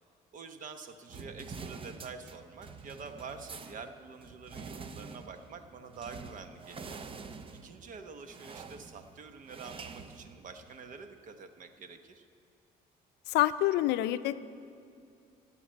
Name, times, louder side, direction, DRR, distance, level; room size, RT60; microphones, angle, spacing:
voice 1, 0.3-7.0 7.6-12.2, right 5 dB, 50° right, 8 dB, 1.0 m, -47 dB
sound 1, 1.1-10.9, right 4 dB, 30° right, 0.7 m, -47 dB
voice 2, 13.3-14.4, left 14 dB, 85° left, 14 dB, 0.5 m, -27 dB
15.0 x 5.9 x 9.1 m, 2.4 s
cardioid pair, 110°, 17 cm